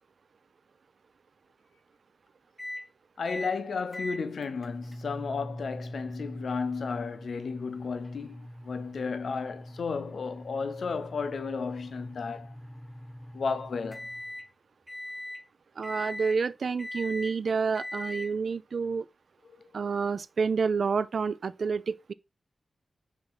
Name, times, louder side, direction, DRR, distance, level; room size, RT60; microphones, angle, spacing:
sound 1, 2.6-2.9 3.3-3.6 3.9-14.5 14.9-15.4 15.8-16.4 16.8-17.3 17.7-18.3, left 1 dB, 5° left, 0.9 m, -41 dB
voice 1, 3.2-12.5 13.3-14.1 19.5-19.7, left 5 dB, 75° left, 0.8 m, -33 dB
voice 2, 15.8-19.1 19.7-22.1, right 5 dB, 65° right, 0.4 m, -29 dB
5.9 x 4.2 x 4.8 m
wide cardioid pair, 90°, 0 cm